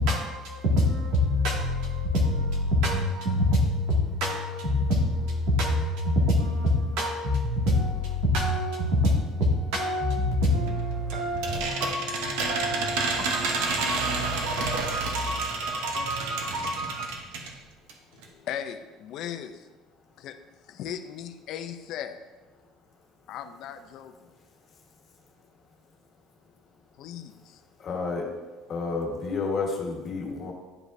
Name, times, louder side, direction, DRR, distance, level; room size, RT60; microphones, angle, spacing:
voice 1, 0.0-17.1, left 1 dB, 75° right, -2 dB, 2.0 m, -26 dB
sound 1, 10.7-17.6 17.9-18.0 18.2-18.3, right 3 dB, 90° right, 0.9 m, -30 dB
voice 2, 18.3-19.7 20.2-20.4 20.7-22.2 23.3-24.1 27.0-27.6, left 9 dB, 55° left, 9 dB, 0.4 m, -37 dB
voice 3, 27.8-28.3 28.7-30.5, left 4 dB, 35° left, 0 dB, 1.4 m, -30 dB
11.0 x 5.0 x 2.6 m, 1.2 s
cardioid pair, 155°, 0 cm